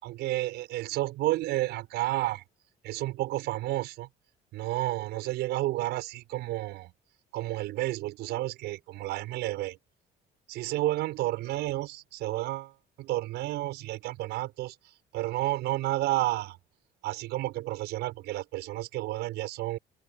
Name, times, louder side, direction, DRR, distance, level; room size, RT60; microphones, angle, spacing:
voice 1, 0.0-2.4 2.8-4.1 4.5-6.9 7.3-9.8 10.5-16.6 17.0-19.8, right 17 dB, 85° right, 6.9 m, -31 dB
open air
cardioid pair, 110°, 17 cm